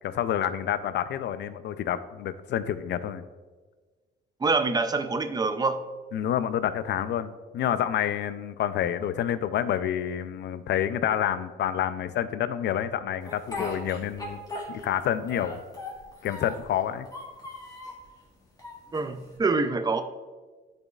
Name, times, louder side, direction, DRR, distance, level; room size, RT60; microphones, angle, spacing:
voice 1, 0.0-3.2 6.1-14.4 14.7-15.6 16.2-17.1, left 10 dB, 60° left, 12 dB, 0.4 m, -28 dB
voice 2, 4.4-5.8 18.9-20.0, right 3 dB, 20° right, 10 dB, 0.5 m, -25 dB
Speech, 13.2-15.0 15.3-16.7 17.0-18.0 18.6-19.4, left 2 dB, 20° left, 1.5 m, -38 dB
10.5 x 4.1 x 2.4 m, 1.3 s
cardioid pair, 90°, 20 cm